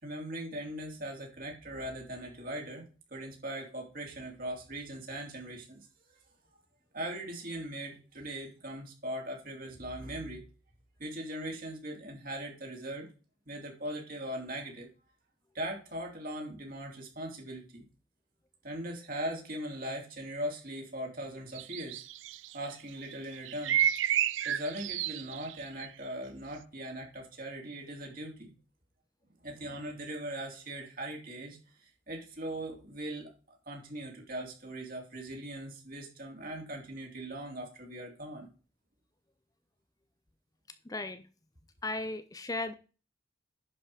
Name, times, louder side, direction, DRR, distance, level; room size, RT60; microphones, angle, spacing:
voice 1, 0.0-2.8 3.1-5.9 6.9-10.4 11.0-13.1 13.4-14.9 15.5-17.8 18.6-22.0 22.5-23.8 24.4-28.5 29.4-33.3 33.6-38.5, right 1 dB, 45° right, 1 dB, 3.3 m, -40 dB
sound 1, 21.5-22.7 23.1-25.9, right 11 dB, 80° right, 0.5 m, -30 dB
voice 2, 40.9-41.2 41.8-42.7, left 2 dB, 20° left, 11 dB, 0.5 m, -35 dB
11.0 x 5.3 x 4.9 m, 0.35 s
head